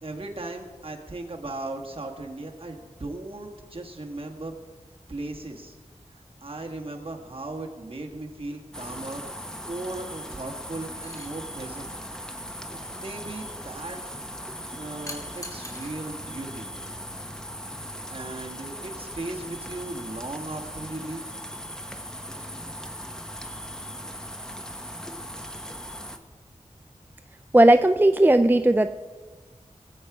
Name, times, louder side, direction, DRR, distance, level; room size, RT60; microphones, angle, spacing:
voice 1, 0.0-4.5 5.1-5.8 6.1-9.2 9.5-11.9 12.7-14.0 14.8-16.7 18.1-21.4, right 2 dB, 45° right, 0 dB, 1.8 m, -37 dB
sound 1, 8.7-26.2, equal, 5° left, 1.1 m, -39 dB
sound 2, 11.0-11.3 15.1-15.9 17.3-17.5, left 1 dB, 25° left, 2.5 m, -41 dB
voice 2, 27.5-28.9, right 1 dB, 15° right, 9 dB, 0.4 m, -17 dB
20.0 x 8.3 x 4.9 m, 1.4 s
wide cardioid pair, 75°, 13 cm